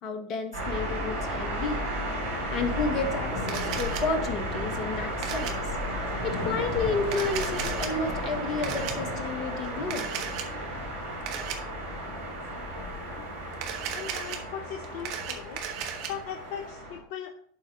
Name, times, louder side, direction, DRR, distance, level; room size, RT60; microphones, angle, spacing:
voice 1, 0.0-1.8 2.5-5.6 6.2-10.2, left 3 dB, 40° left, 7 dB, 1.4 m, -31 dB
sound 1, 0.5-17.0, equal, 80° right, 3.5 m, -33 dB
Camera, 3.5-4.0 5.2-5.5 7.0-7.9 8.6-8.9 9.9-10.5 11.3-11.6 13.5-14.4 14.8-16.1, right 9 dB, 50° right, 1.2 m, -35 dB
voice 2, 13.9-15.6 16.1-17.5, left 8 dB, 55° left, 6 dB, 0.6 m, -39 dB
11.5 x 4.4 x 3.9 m, 0.65 s
figure-of-eight pair, 80°, 0 cm